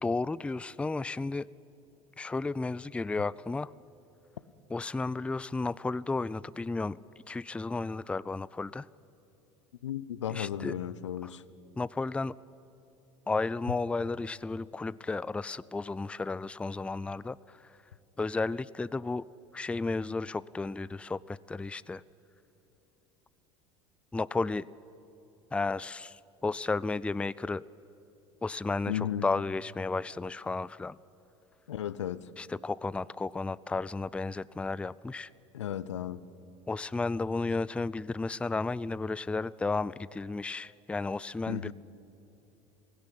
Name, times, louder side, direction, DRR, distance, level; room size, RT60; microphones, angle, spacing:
voice 1, 0.0-1.5 2.2-3.7 4.7-7.0 7.3-8.9 10.3-10.7 11.2-11.3 11.8-12.3 13.3-17.7 18.2-19.3 19.5-22.0 24.1-24.7 25.5-27.6 28.4-31.0 32.4-35.3 36.7-41.7, left 3 dB, 10° left, 20 dB, 0.4 m, -33 dB
voice 2, 9.8-11.4 28.9-29.2 31.7-32.3 35.5-36.2 41.5-41.7, left 10 dB, 85° left, 17 dB, 0.6 m, -34 dB
17.0 x 16.5 x 9.9 m, 3.0 s
hypercardioid pair, 75°, 15 cm